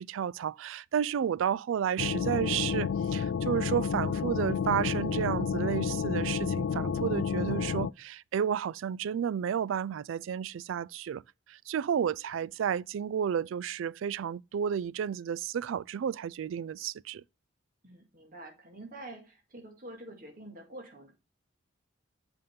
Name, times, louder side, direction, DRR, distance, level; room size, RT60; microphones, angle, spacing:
voice 1, 0.0-11.2 11.5-17.2, right 8 dB, 85° right, 0.3 m, -32 dB
sound 1, 2.0-7.9, left 6 dB, 75° left, 0.3 m, -30 dB
voice 2, 17.8-21.1, right 1 dB, 50° right, 2.2 m, -47 dB
7.8 x 5.3 x 3.6 m
head